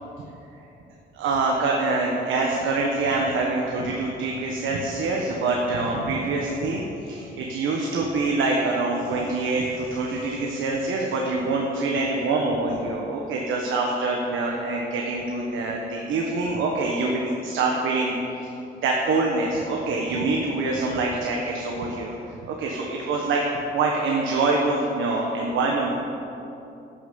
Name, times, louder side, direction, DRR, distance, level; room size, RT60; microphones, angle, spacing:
voice 1, 1.1-18.5 18.8-22.1 22.4-23.4 23.7-26.0, right 3 dB, 80° right, -1 dB, 1.3 m, -25 dB
11.0 x 7.1 x 7.6 m, 2.9 s
cardioid pair, 90°, 20 cm